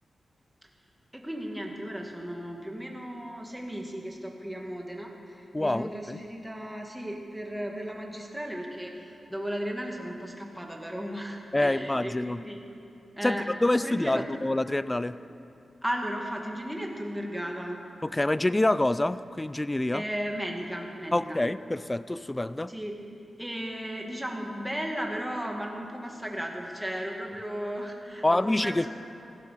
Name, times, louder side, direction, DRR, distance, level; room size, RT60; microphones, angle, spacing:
voice 1, 1.1-12.6 13.2-13.5 13.8-14.3 15.8-17.8 19.9-21.4 22.7-23.0 23.4-28.9, equal, 5° right, 1 dB, 1.7 m, -35 dB
voice 2, 5.5-6.2 11.5-12.4 13.2-13.4 13.6-15.2 18.0-20.0 21.1-22.7 28.2-28.9, left 1 dB, 15° left, 15 dB, 0.3 m, -26 dB
16.0 x 13.5 x 5.7 m, 2.8 s
wide cardioid pair, 135°, 0 cm